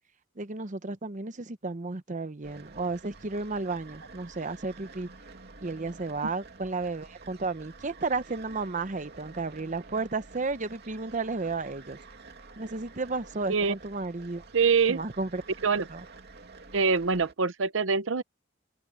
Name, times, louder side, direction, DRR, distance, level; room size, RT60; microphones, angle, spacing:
voice 1, 0.4-5.1 5.6-12.0 12.6-14.4 14.9-15.4 15.9-16.0, right 3 dB, 40° right, 0.9 m, -33 dB
sound 1, 2.4-17.3, right 3 dB, 55° right, 2.8 m, -50 dB
voice 2, 14.5-15.0 15.6-15.9 16.7-18.2, right 5 dB, 80° right, 0.8 m, -24 dB
open air
head